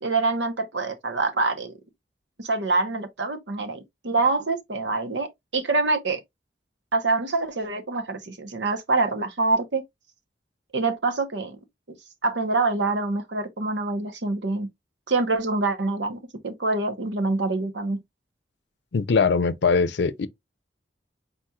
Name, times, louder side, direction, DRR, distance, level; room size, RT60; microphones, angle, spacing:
voice 1, 0.0-1.7 2.4-5.3 5.5-6.2 6.9-9.8 10.7-11.6 11.9-12.0 12.2-14.7 15.1-18.0, right 3 dB, 80° right, 1.0 m, -25 dB
voice 2, 18.9-20.3, left 5 dB, 70° left, 0.5 m, -21 dB
4.3 x 4.2 x 2.3 m
head